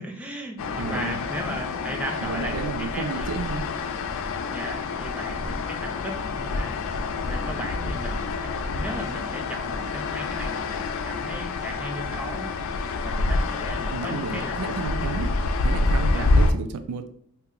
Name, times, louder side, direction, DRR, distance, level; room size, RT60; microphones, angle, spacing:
voice 1, 0.0-3.3 4.5-6.8 7.3-12.5 12.8-14.8 16.1-16.3, right 1 dB, 5° right, 0 dB, 0.4 m, -37 dB
sound 1, 0.6-16.5, left 3 dB, 60° left, 0.3 m, -27 dB
voice 2, 0.8-1.2 2.2-3.7 13.9-15.3 15.6-17.1, right 5 dB, 90° right, 9 dB, 0.3 m, -32 dB
2.8 x 2.1 x 3.7 m, 0.63 s
head